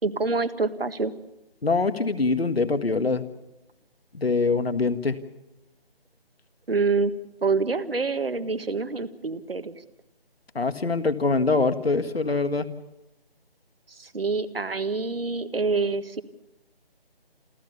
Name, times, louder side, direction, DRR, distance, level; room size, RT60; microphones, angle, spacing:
voice 1, 0.0-1.1 6.7-7.1 7.4-9.7 13.9-16.2, right 4 dB, 70° right, 13 dB, 1.6 m, -26 dB
voice 2, 1.6-3.3 4.1-5.2 10.6-12.7, left 3 dB, 75° left, 11 dB, 1.9 m, -24 dB
28.0 x 14.0 x 6.9 m, 0.96 s
figure-of-eight pair, 160°, 30 cm